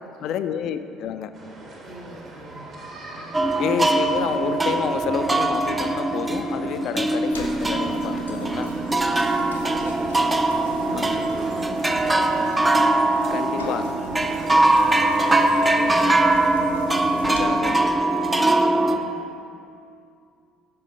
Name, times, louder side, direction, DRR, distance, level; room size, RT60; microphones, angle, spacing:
voice 1, 0.2-1.3 3.6-8.7 10.9-11.2 13.3-13.9 17.3-17.9, left 8 dB, 55° left, 10 dB, 0.3 m, -29 dB
sound 1, 1.3-12.5, right 1 dB, 45° right, 1.5 m, -42 dB
voice 2, 1.8-2.8 3.1-3.5 6.7-6.9 9.1-9.6 10.5-12.2 13.0-16.2 16.9-19.2, equal, 65° right, -7 dB, 2.0 m, -41 dB
sound 2, 3.3-19.0, right 2 dB, 15° right, 0.5 m, -21 dB
sound 3, 7.3-17.4, left 1 dB, 90° left, 0.7 m, -41 dB
7.6 x 5.5 x 5.2 m, 2.4 s
figure-of-eight pair, 55°, 0 cm